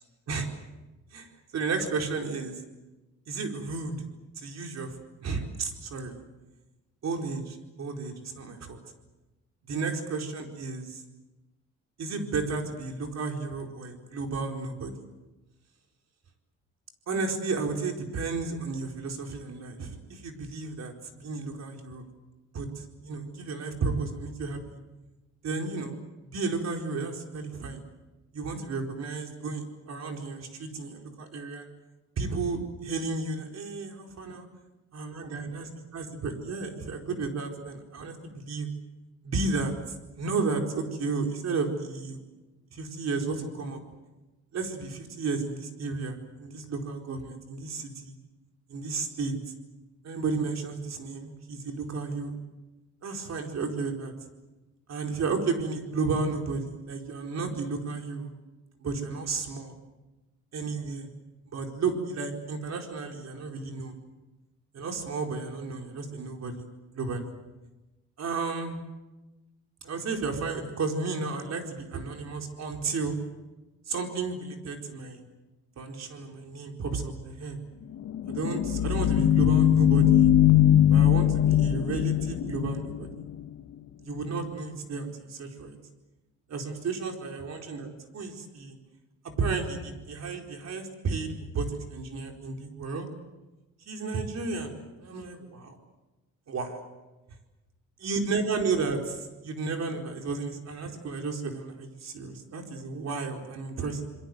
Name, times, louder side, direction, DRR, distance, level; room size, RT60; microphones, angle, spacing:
voice 1, 1.1-2.6 3.3-4.0 4.4-5.0 5.2-6.2 7.0-8.8 9.7-11.0 12.0-14.9 17.1-22.0 22.5-24.8 25.4-25.9 26.2-27.8 28.3-31.7 32.2-34.5 34.9-38.7 39.2-39.7 40.2-42.2 42.7-43.8 44.5-48.1 48.7-49.3 50.0-52.4 53.0-54.1 54.9-58.3 58.8-59.7 60.5-61.1 61.5-63.9 64.7-66.6 66.9-67.3 68.2-68.8 69.8-73.1 73.9-75.2 75.8-77.6 78.3-80.3 80.9-83.1 84.0-85.8 86.5-88.7 89.2-93.1 93.9-95.7 96.5-96.9 98.0-104.1, right 4 dB, 60° right, 3 dB, 4.6 m, -33 dB
sound 1, 78.0-83.5, left 11 dB, 70° left, 1.5 m, -21 dB
27.5 x 22.5 x 8.0 m, 1.1 s
cardioid pair, 90°, 30 cm